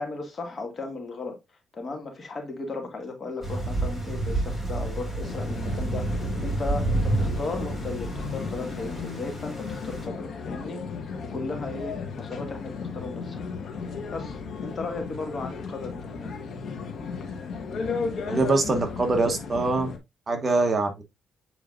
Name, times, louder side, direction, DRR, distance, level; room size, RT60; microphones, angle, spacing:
voice 1, 0.0-1.4 1.7-10.8 11.2-13.5 14.1-16.3, left 3 dB, 35° left, 2.1 m, -36 dB
Thunder / Rain, 3.4-10.1, right 2 dB, 5° left, 3.6 m, -30 dB
sound 1, 5.2-20.0, left 5 dB, 60° left, 1.3 m, -35 dB
voice 2, 18.3-19.9 20.3-21.0, right 3 dB, 30° right, 1.1 m, -24 dB
8.5 x 4.7 x 2.5 m
cardioid pair, 135°, 0 cm